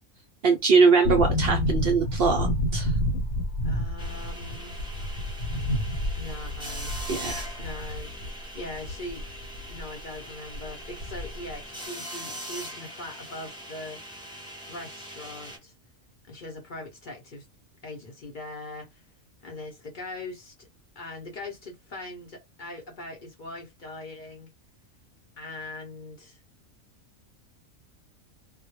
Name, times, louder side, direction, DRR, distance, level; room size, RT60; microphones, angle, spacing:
voice 1, 0.4-2.9 7.1-7.5, right 4 dB, 65° right, 0.6 m, -22 dB
sound 1, 1.0-9.9 10.1-10.2 10.5-11.5 11.8-11.9, left 1 dB, 80° left, 1.1 m, -29 dB
voice 2, 3.6-4.8 6.2-6.9 7.6-9.2 9.7-14.0 14.7-15.7 16.2-17.4 17.8-19.0 19.4-20.7 21.0-24.5 25.4-26.4, left 2 dB, 50° left, 0.6 m, -41 dB
sound 2, 4.0-15.6, equal, 5° right, 0.5 m, -41 dB
2.2 x 2.1 x 2.9 m
omnidirectional pair, 1.4 m